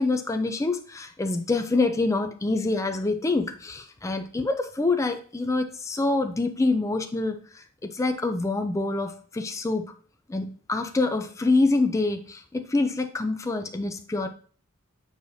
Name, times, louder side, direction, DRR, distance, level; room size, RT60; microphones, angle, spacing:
voice 1, 0.0-7.6 7.9-9.9 10.3-14.3, left 3 dB, 15° left, 6 dB, 0.4 m, -26 dB
7.9 x 4.7 x 2.7 m, 0.44 s
head